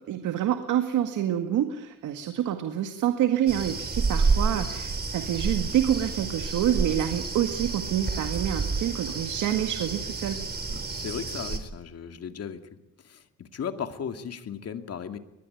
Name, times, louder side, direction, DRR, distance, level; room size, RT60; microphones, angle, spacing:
voice 1, 0.1-10.4, right 11 dB, 80° right, 7 dB, 2.0 m, -27 dB
sound 1, 3.5-11.6, right 4 dB, 30° right, 3.8 m, -29 dB
voice 2, 10.7-12.6 13.0-15.2, left 7 dB, 55° left, 7 dB, 2.5 m, -36 dB
22.5 x 21.0 x 9.4 m, 0.92 s
cardioid pair, 90°, 30 cm